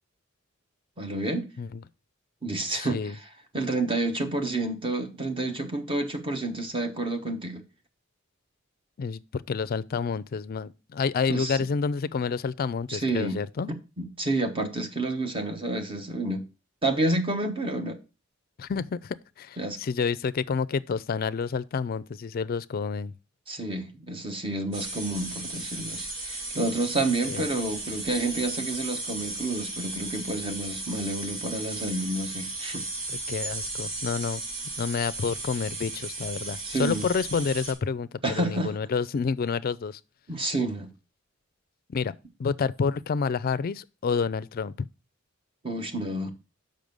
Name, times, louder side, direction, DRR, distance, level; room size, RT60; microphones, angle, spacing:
voice 1, 1.0-1.5 2.4-3.1 3.5-7.6 11.3-11.6 12.9-13.4 13.7-16.4 16.8-18.0 19.6-19.8 23.5-32.8 36.6-37.1 38.2-38.7 40.3-40.9 45.6-46.3, right 2 dB, 25° right, 1.1 m, -29 dB
voice 2, 2.7-3.1 9.0-13.7 18.6-23.1 27.0-27.5 33.1-34.4 34.8-40.0 41.9-42.1 42.4-44.9, left 5 dB, 45° left, 0.4 m, -29 dB
sound 1, 24.7-37.7, right 2 dB, 85° right, 2.6 m, -35 dB
6.4 x 5.4 x 5.2 m
head